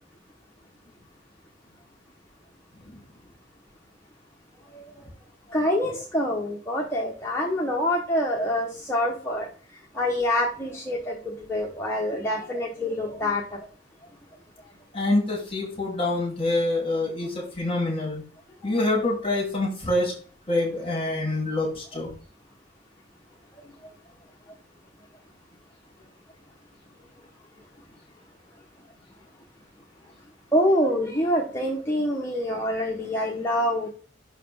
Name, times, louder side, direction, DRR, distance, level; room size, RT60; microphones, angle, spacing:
voice 1, 5.5-9.5 9.9-13.6 18.6-18.8 30.5-33.9, left 1 dB, 15° left, -3 dB, 1.0 m, -26 dB
voice 2, 14.9-18.2 18.6-20.1 20.5-22.1, left 2 dB, 30° left, -1 dB, 1.9 m, -26 dB
5.9 x 4.2 x 5.4 m, 0.42 s
head